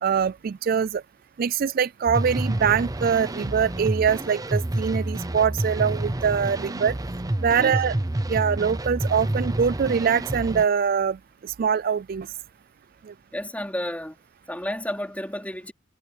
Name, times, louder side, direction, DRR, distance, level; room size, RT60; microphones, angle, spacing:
voice 1, 0.0-1.0 1.4-7.0 7.4-7.9 8.3-11.2 11.4-12.3, right 7 dB, 50° right, 0.3 m, -23 dB
sound 1, 2.1-10.6, right 1 dB, 20° right, 0.7 m, -29 dB
voice 2, 13.3-14.2 14.5-15.7, left 1 dB, 10° left, 4.3 m, -31 dB
head